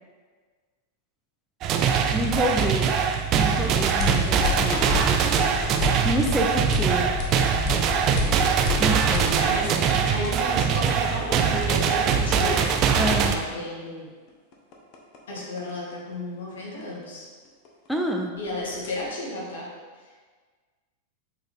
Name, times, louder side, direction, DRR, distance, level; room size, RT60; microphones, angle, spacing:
sound 1, 1.6-13.3, right 7 dB, 35° right, 0.6 m, -22 dB
voice 1, 2.1-3.1 3.3-5.1 6.0-7.1 8.8-9.4 12.9-13.3 17.9-18.3, equal, ahead, 1 dB, 0.7 m, -28 dB
sound 2, 2.3-18.1 18.4-19.0, left 9 dB, 40° left, 1.2 m, -33 dB
voice 2, 4.0-4.9 6.6-6.7 9.4-12.7 13.2-14.1 15.3-17.3 18.4-19.7 20.0-20.1, left 1 dB, 60° left, -4 dB, 2.1 m, -33 dB
7.7 x 4.6 x 3.7 m, 1.5 s
figure-of-eight pair, 90°, 0 cm